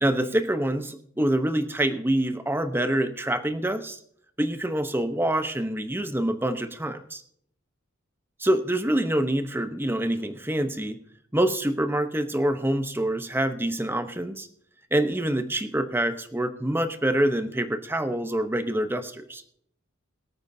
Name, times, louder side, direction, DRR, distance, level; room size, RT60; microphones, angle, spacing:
voice 1, 0.0-4.0 4.4-7.2 8.4-11.0 11.3-14.5 14.9-19.4, right 1 dB, 10° right, 8 dB, 0.9 m, -26 dB
23.5 x 8.9 x 2.7 m, 0.65 s
head